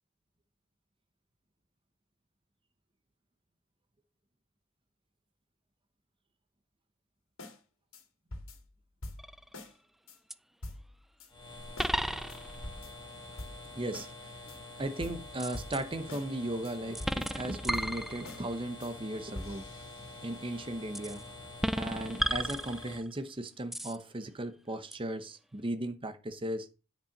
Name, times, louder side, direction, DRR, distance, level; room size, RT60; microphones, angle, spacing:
sound 1, 7.4-7.6 7.9-8.0 8.3-9.8 10.1-10.2 10.6-11.3 11.8-12.0 12.3-14.2 14.5-16.3 16.6-18.5 18.8-18.9 19.2-20.5, left 1 dB, 65° left, 2.4 m, -46 dB
sound 2, 9.2-9.6 10.3-10.4 11.8-12.7 15.4-15.8 17.0-18.5 21.0-21.2 21.6-23.2 23.7-24.0 24.9-25.0, equal, ahead, 0.4 m, -34 dB
sound 3, 11.3-23.0, left 2 dB, 20° left, 2.5 m, -47 dB
voice 1, 13.8-14.5 14.8-19.7 20.2-21.2 21.7-26.7, right 1 dB, 25° right, 0.9 m, -37 dB
10.0 x 5.5 x 5.2 m
head